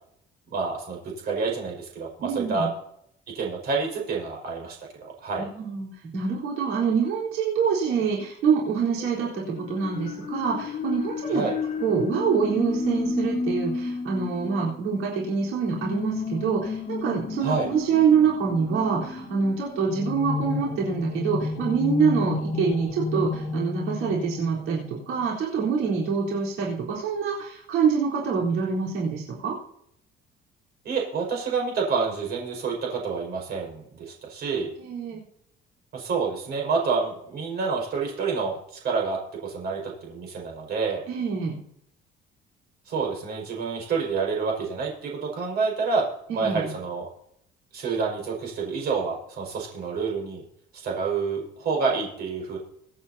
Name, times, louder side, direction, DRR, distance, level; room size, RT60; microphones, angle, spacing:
voice 1, 0.5-1.0 1.2-2.7 3.3-5.5 11.3-11.5 17.4-17.7 30.8-34.7 35.9-41.0 42.9-46.1 46.3-47.1 47.7-50.4 50.7-52.6, right 5 dB, 55° right, -1 dB, 5.4 m, -28 dB
voice 2, 2.2-2.7 5.4-11.4 11.8-29.5 34.8-35.2 41.1-41.6 46.3-46.7, right 6 dB, 85° right, -4 dB, 4.0 m, -25 dB
sound 1, 9.0-25.2, left 4 dB, 30° left, 1.3 m, -32 dB
24.5 x 8.9 x 2.8 m, 0.71 s
cardioid pair, 165°, 20 cm